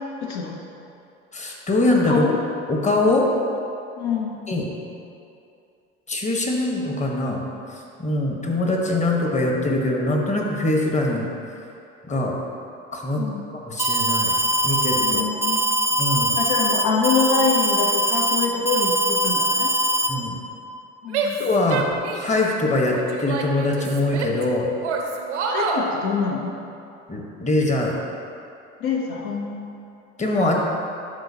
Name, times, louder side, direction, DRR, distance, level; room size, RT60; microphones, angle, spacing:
voice 1, 0.2-0.6 2.1-2.4 4.0-4.4 13.2-13.4 15.0-15.7 16.4-19.7 21.0-21.4 25.4-26.6 28.8-29.7, left 5 dB, 70° left, 0 dB, 0.8 m, -25 dB
voice 2, 1.3-2.3 2.7-3.3 4.5-4.7 6.1-7.4 8.0-11.3 12.1-12.3 12.9-13.2 13.5-14.3 14.6-15.2 16.0-16.4 20.1-20.4 21.4-24.7 27.1-27.9 30.2-30.6, left 2 dB, 20° left, 0 dB, 1.2 m, -22 dB
Alarm, 13.8-20.1, right 1 dB, 10° right, 0.4 m, -22 dB
Female speech woman speaking / Yell, 21.1-22.4 22.9-24.4 24.8-25.9, right 5 dB, 90° right, 0.7 m, -27 dB
11.0 x 4.0 x 2.8 m, 2.6 s
hypercardioid pair, 70°, 34 cm